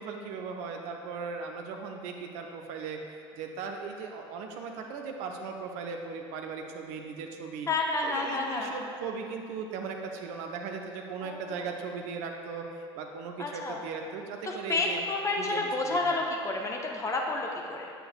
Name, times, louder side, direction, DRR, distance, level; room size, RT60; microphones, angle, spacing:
voice 1, 0.0-7.7 8.0-15.0 15.4-16.2, right 5 dB, 55° right, 3 dB, 0.7 m, -38 dB
voice 2, 7.7-8.7 11.2-11.7 13.4-13.8 14.4-17.9, left 3 dB, 20° left, 0 dB, 0.9 m, -30 dB
7.8 x 6.7 x 2.5 m, 2.4 s
figure-of-eight pair, 70°, 15 cm